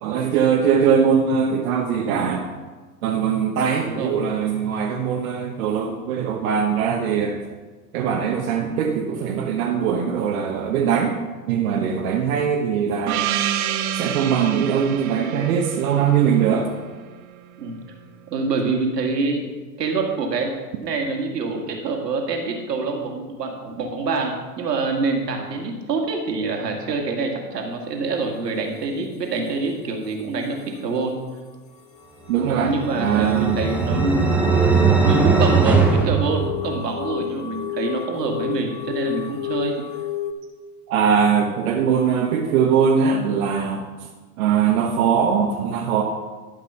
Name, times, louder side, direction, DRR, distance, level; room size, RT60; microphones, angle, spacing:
voice 1, 0.0-2.4 3.0-7.4 7.9-11.2 11.5-13.3 13.9-16.7 32.3-33.6 40.9-43.8 44.4-46.0, right 7 dB, 60° right, 1 dB, 1.2 m, -21 dB
voice 2, 3.8-4.1 12.2-12.5 17.6-17.8 18.3-19.5 19.8-20.5 20.8-31.2 32.5-34.3 35.0-39.7, right 3 dB, 80° right, 2 dB, 2.0 m, -26 dB
Gong, 13.1-17.4, right 11 dB, 35° right, 0.7 m, -28 dB
sound 1, 32.0-40.3, left 10 dB, 15° left, 0.6 m, -32 dB
sound 2, 32.5-37.1, right 5 dB, 5° right, 1.0 m, -20 dB
11.5 x 5.4 x 5.7 m, 1.3 s
hypercardioid pair, 95°, 48 cm